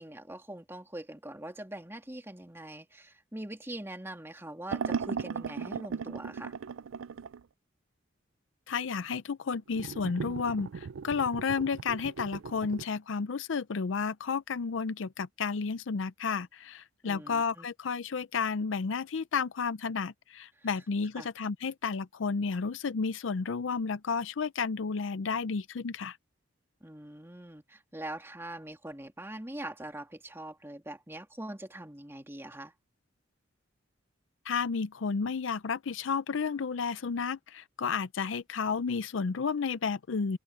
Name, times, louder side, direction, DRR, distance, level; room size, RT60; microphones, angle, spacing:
voice 1, 0.0-6.5 17.0-17.7 21.2-21.3 26.8-32.7, right 1 dB, 10° right, 2.2 m, -43 dB
sound 1, 4.7-7.4 9.7-12.8, right 6 dB, 85° right, 0.4 m, -37 dB
voice 2, 8.7-26.2 34.5-40.4, left 5 dB, 75° left, 0.5 m, -32 dB
head